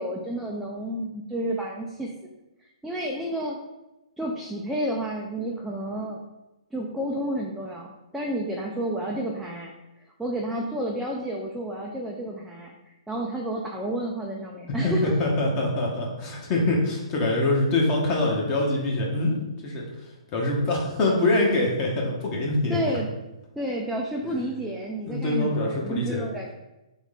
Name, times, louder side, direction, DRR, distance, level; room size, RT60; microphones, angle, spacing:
voice 1, 0.0-2.1 2.8-3.6 4.2-6.2 6.7-9.7 10.2-15.2 22.7-23.1 23.6-26.5, right 1 dB, 5° right, -3 dB, 0.4 m, -30 dB
voice 2, 14.8-19.4 19.6-19.8 20.3-22.8 25.1-26.2, left 2 dB, 30° left, -2 dB, 0.9 m, -24 dB
3.6 x 3.0 x 3.6 m, 0.98 s
figure-of-eight pair, 125°, 3 cm